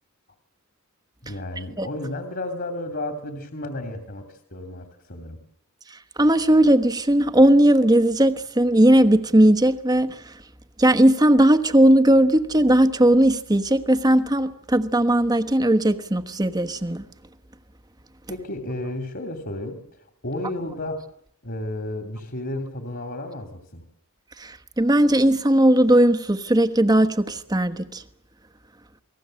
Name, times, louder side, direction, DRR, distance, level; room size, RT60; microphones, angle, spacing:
voice 1, 1.2-4.3 4.5-5.4 18.3-19.8 20.2-21.0 21.4-23.8, left 1 dB, 50° left, 2.8 m, -32 dB
voice 2, 6.2-10.1 10.8-17.0 24.4-28.0, right 1 dB, 15° right, 1.2 m, -18 dB
28.5 x 19.5 x 7.7 m
head